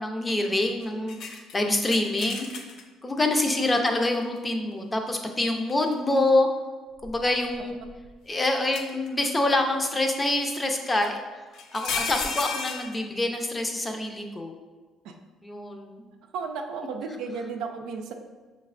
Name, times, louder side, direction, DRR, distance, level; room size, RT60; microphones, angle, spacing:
voice 1, 0.0-2.5 3.0-6.5 7.0-7.8 8.3-11.2 11.7-14.5 15.4-16.0, left 2 dB, 20° left, 3 dB, 0.6 m, -26 dB
sound 1, 1.1-2.8 3.4-3.5 5.6-6.2 7.0-8.1 8.7-9.4 11.0-11.1 11.5-13.0, left 5 dB, 70° left, 0.5 m, -34 dB
voice 2, 3.5-3.8 15.1-15.2 16.3-18.1, right 5 dB, 80° right, 4 dB, 0.4 m, -34 dB
5.7 x 3.2 x 2.5 m, 1.3 s
supercardioid pair, 85°, 0 cm